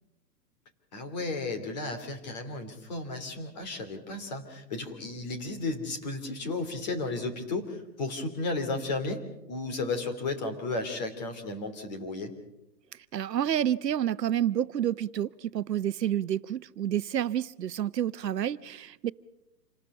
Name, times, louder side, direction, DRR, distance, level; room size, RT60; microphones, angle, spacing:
voice 1, 0.9-12.3, left 3 dB, 25° left, 7 dB, 2.9 m, -34 dB
voice 2, 13.1-19.1, right 10 dB, 80° right, 16 dB, 1.1 m, -29 dB
28.0 x 19.5 x 5.5 m, 0.92 s
hypercardioid pair, 180°, 49 cm